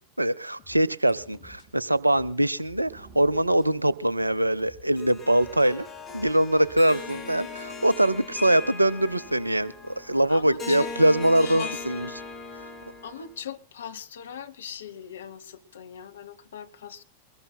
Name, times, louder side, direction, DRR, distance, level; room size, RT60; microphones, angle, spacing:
voice 1, 0.2-5.9 6.1-12.1, right 1 dB, 85° right, 0.6 m, -23 dB
sound 1, 0.6-1.7 2.1-2.9 3.6-3.7 4.6-5.7 6.1-7.1 7.6-7.7, left 4 dB, 40° left, 4.6 m, -53 dB
sound 2, 1.1-2.1 2.4-2.5 2.8-6.2, right 2 dB, 25° right, 6.2 m, -55 dB
Harp, 5.0-13.4, left 4 dB, 20° left, 5.1 m, -39 dB
voice 2, 10.3-10.9 11.4-11.8 13.0-17.0, left 8 dB, 65° left, 1.0 m, -39 dB
23.5 x 20.5 x 2.2 m
figure-of-eight pair, 90°, 0 cm